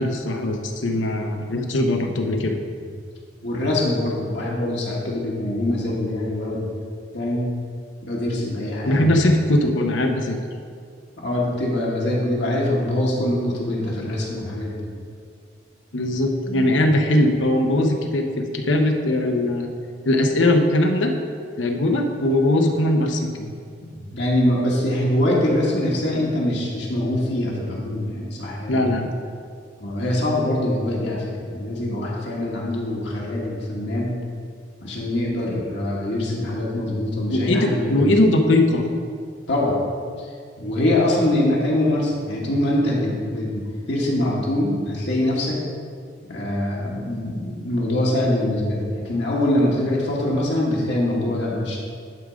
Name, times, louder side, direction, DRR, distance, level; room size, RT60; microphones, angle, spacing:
voice 1, 0.0-2.6 8.9-10.4 15.9-19.7 20.0-21.2 21.6-23.5 28.7-29.1 37.3-38.9, left 1 dB, 85° left, 3 dB, 0.8 m, -20 dB
voice 2, 3.4-6.7 7.1-7.5 8.1-9.2 11.2-14.9 21.7-21.8 23.8-29.0 29.8-34.1 34.8-38.0 39.5-39.8 40.2-40.3 40.6-45.6 46.3-51.8, left 1 dB, 65° left, -4 dB, 1.5 m, -23 dB
11.0 x 3.7 x 5.1 m, 2.1 s
head